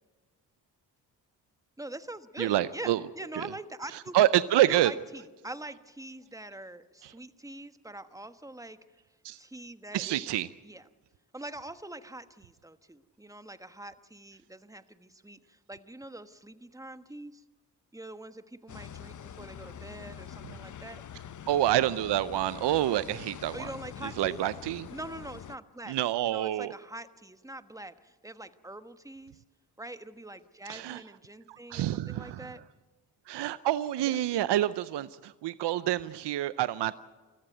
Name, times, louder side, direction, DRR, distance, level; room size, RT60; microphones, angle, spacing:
voice 1, 1.8-4.2 4.6-9.0 9.4-10.3 10.6-10.8 11.3-17.4 17.9-21.0 23.5-24.4 24.9-26.0 26.3-29.4 29.8-32.6 34.0-34.2, right 1 dB, 10° right, 11 dB, 1.3 m, -44 dB
voice 2, 2.4-3.0 3.3-3.5 4.1-4.9 9.2-9.4 9.9-10.5 21.5-23.7 24.2-24.8 25.9-26.7 30.7-31.0 31.5-32.5 33.3-37.0, right 13 dB, 70° right, 16 dB, 0.7 m, -27 dB
sound 1, 18.7-25.6, left 9 dB, 45° left, 0.7 m, -45 dB
22.0 x 14.5 x 9.2 m, 1.3 s
supercardioid pair, 50°, 43 cm